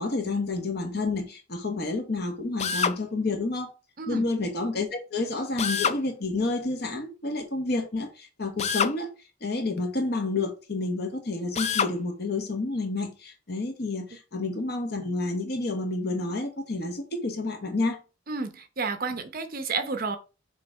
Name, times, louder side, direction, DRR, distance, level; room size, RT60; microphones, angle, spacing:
voice 1, 0.0-3.7 4.1-9.1 9.4-18.0, left 3 dB, 55° left, 1.1 m, -29 dB
Drill, 2.6-3.0 5.6-6.0 8.6-9.0 11.5-11.9, left 6 dB, 35° left, 0.4 m, -26 dB
voice 2, 18.3-20.2, right 4 dB, 50° right, 0.8 m, -31 dB
6.5 x 3.2 x 4.5 m
head